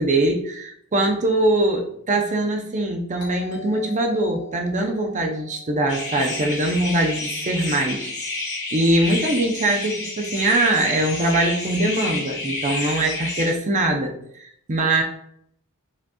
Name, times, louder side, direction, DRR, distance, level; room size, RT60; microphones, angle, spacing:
voice 1, 0.0-8.1 8.7-15.0, right 1 dB, 35° right, 3 dB, 0.6 m, -22 dB
Doorbell, 3.2-7.8, left 4 dB, 55° left, 1.4 m, -44 dB
sound 1, 5.9-13.5, left 2 dB, 35° left, 1.8 m, -30 dB
5.1 x 4.0 x 2.3 m, 0.70 s
head